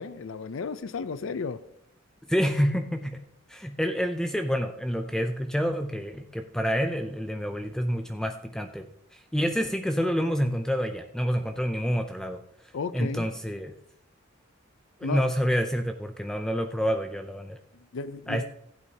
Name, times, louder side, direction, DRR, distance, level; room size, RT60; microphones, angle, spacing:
voice 1, 0.0-1.6 12.7-13.3 15.0-15.3 17.9-18.4, left 4 dB, 70° left, 14 dB, 0.5 m, -33 dB
voice 2, 2.3-3.2 3.5-8.9 9.1-12.4 12.9-13.7 15.0-17.6 18.3-18.4, equal, 5° left, 6 dB, 0.4 m, -28 dB
15.5 x 8.3 x 2.8 m, 0.73 s
head